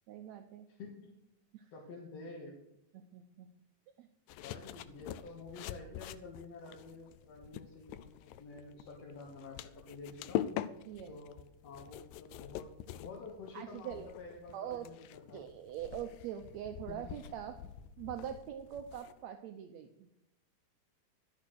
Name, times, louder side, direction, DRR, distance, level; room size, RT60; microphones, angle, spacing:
voice 1, 0.1-0.7 1.5-1.7 2.9-3.5 4.0-4.1 10.8-11.2 13.5-14.1 14.5-14.9 15.3-17.6 18.0-20.1, right 10 dB, 80° right, 7 dB, 1.6 m, -43 dB
voice 2, 0.7-1.2 1.7-2.6 4.3-10.4 11.1-15.4 16.9-17.0, left 3 dB, 55° left, -2 dB, 2.4 m, -50 dB
sound 1, 4.3-19.2, left 12 dB, 85° left, 2.2 m, -44 dB
12.5 x 6.6 x 6.2 m, 0.86 s
omnidirectional pair, 4.0 m